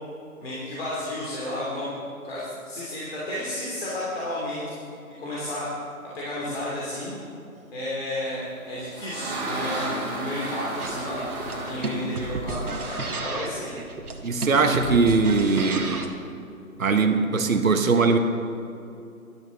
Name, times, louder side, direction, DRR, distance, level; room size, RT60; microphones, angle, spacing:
voice 1, 0.4-1.9 2.2-4.7 5.2-5.7 6.0-7.1 7.7-13.8, left 1 dB, 40° left, -7 dB, 3.1 m, -32 dB
sound 1, 8.5-13.2, right 2 dB, 25° right, 3.5 m, -33 dB
sound 2, 10.8-16.2, right 2 dB, 85° right, 1.6 m, -32 dB
voice 2, 14.2-16.1 16.8-18.2, right 4 dB, 65° right, 6 dB, 1.4 m, -21 dB
13.5 x 12.0 x 4.1 m, 2.7 s
figure-of-eight pair, 145°, 44 cm